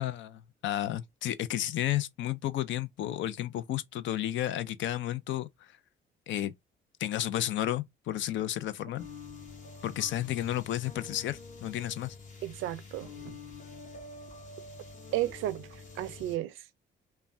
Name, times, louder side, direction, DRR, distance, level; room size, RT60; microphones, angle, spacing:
voice 1, 0.0-5.5 6.3-6.5 7.0-9.0 9.8-12.1, left 12 dB, 70° left, 0.4 m, -32 dB
sound 1, 9.0-16.4, left 3 dB, 40° left, 1.1 m, -47 dB
voice 2, 12.4-13.4 15.1-15.7 16.0-16.6, right 14 dB, 90° right, 0.5 m, -33 dB
3.2 x 2.2 x 2.5 m
cardioid pair, 90°, 20 cm